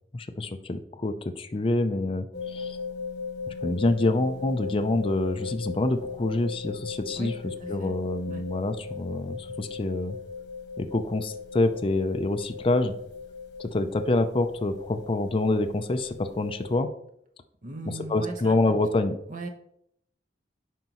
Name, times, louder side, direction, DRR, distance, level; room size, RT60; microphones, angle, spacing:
voice 1, 0.1-2.8 3.5-7.3 7.7-10.2 10.8-13.0 13.6-16.9 18.1-19.2, left 2 dB, 30° left, 7 dB, 0.5 m, -26 dB
sound 1, 2.3-16.7, left 5 dB, 80° left, 1.3 m, -38 dB
voice 2, 7.1-8.0 8.3-8.4 17.6-18.8 19.3-19.5, right 2 dB, 50° right, 5 dB, 1.1 m, -38 dB
9.3 x 5.2 x 3.0 m, 0.72 s
head